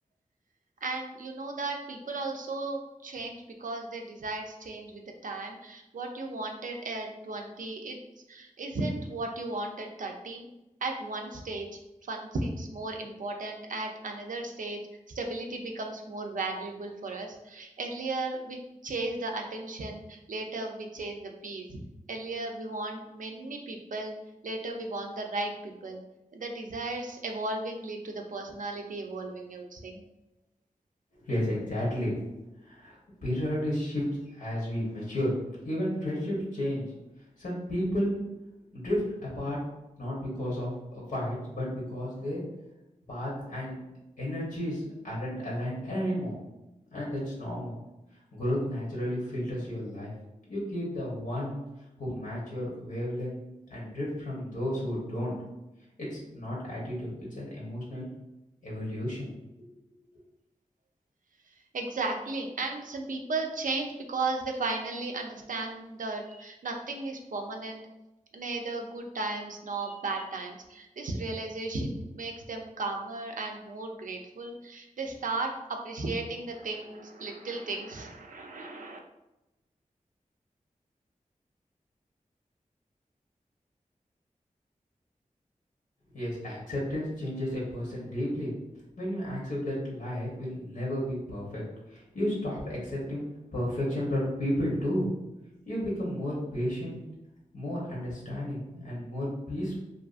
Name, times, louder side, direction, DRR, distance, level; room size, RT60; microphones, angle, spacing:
voice 1, 0.8-8.0 8.3-10.5 10.8-11.7 12.1-14.8 15.1-21.8 22.1-24.2 24.4-26.0 26.3-30.0 61.7-67.8 68.3-79.0, right 2 dB, 65° right, 2 dB, 0.4 m, -35 dB
voice 2, 31.2-32.2 32.6-33.0 33.2-35.3 35.6-36.9 37.4-38.2 38.7-39.6 40.0-42.4 43.1-43.8 44.2-46.4 46.9-47.8 48.3-50.1 50.5-51.6 52.0-53.4 53.7-55.4 56.0-58.1 58.6-59.3 59.6-59.8 86.1-88.5 89.0-91.6 91.9-93.2 93.5-95.1 95.7-97.0 97.5-99.8, equal, 75° left, -5 dB, 0.9 m, -32 dB
2.5 x 2.4 x 2.4 m, 0.96 s
cardioid pair, 40°, 14 cm